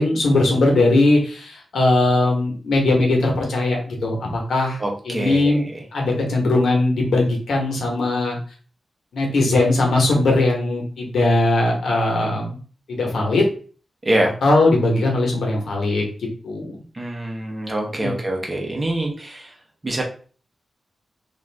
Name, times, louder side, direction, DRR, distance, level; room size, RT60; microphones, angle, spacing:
voice 1, 0.0-5.6 5.9-8.4 9.1-12.6 12.9-13.4 14.4-16.0 16.4-16.8 18.0-18.1, left 2 dB, 85° left, 0 dB, 0.9 m, -19 dB
voice 2, 4.8-5.6 14.0-14.3 16.9-19.5 19.8-20.0, right 1 dB, 25° right, 0 dB, 0.7 m, -24 dB
2.5 x 2.5 x 3.3 m, 0.41 s
wide cardioid pair, 115°, 0 cm